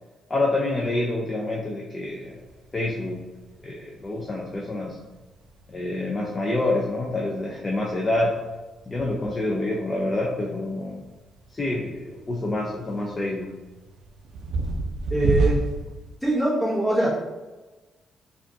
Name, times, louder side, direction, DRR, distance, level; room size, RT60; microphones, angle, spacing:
voice 1, 0.3-2.4 2.7-3.2 3.6-5.0 5.7-8.4 8.9-11.1 11.5-13.6, left 2 dB, 20° left, -2 dB, 0.4 m, -27 dB
sound 1, 2.0-16.2, right 3 dB, 65° right, 0.4 m, -33 dB
voice 2, 15.1-15.6 16.2-17.2, right 1 dB, 5° left, -6 dB, 1.0 m, -22 dB
4.5 x 2.4 x 2.7 m, 1.2 s
cardioid pair, 150°, 0 cm